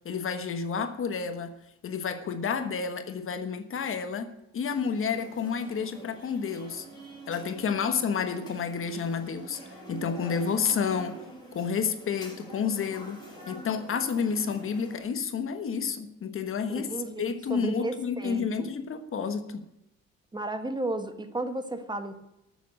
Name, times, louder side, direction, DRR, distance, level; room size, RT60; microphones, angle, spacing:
voice 1, 0.0-1.5 1.8-4.3 4.5-6.9 7.3-9.6 9.9-11.2 11.5-13.2 13.5-16.9 17.2-19.6, left 6 dB, 45° left, 9 dB, 1.4 m, -30 dB
sound 1, 4.6-15.0, right 1 dB, 15° left, 6.8 m, -46 dB
voice 2, 16.7-18.7 20.3-22.1, right 2 dB, 15° right, 8 dB, 1.4 m, -34 dB
13.0 x 7.3 x 8.6 m, 0.87 s
cardioid pair, 140°, 29 cm